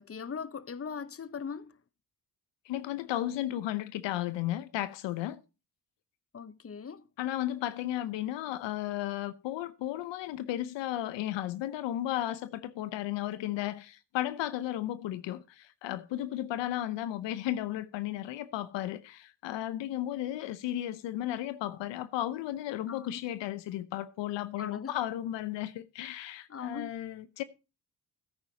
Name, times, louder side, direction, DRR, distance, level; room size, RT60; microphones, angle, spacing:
voice 1, 0.0-1.8 6.3-7.0 22.9-23.2 24.6-25.0 26.5-26.9, left 6 dB, 30° left, 1.0 m, -40 dB
voice 2, 2.7-5.4 7.2-27.4, left 13 dB, 85° left, 0.8 m, -34 dB
15.5 x 9.6 x 2.8 m
supercardioid pair, 50°, 43 cm